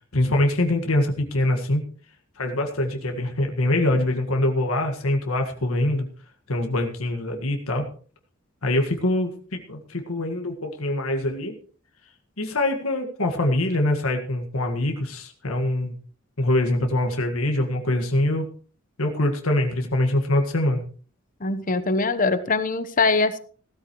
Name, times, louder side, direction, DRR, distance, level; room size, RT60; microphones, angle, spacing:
voice 1, 0.1-1.8 2.4-6.1 6.5-7.9 8.6-11.6 12.4-16.0 16.4-18.5 19.0-20.8, left 1 dB, 90° left, 3 dB, 1.8 m, -24 dB
voice 2, 21.4-23.4, left 3 dB, 40° left, 12 dB, 1.0 m, -22 dB
16.5 x 13.0 x 3.2 m, 0.42 s
head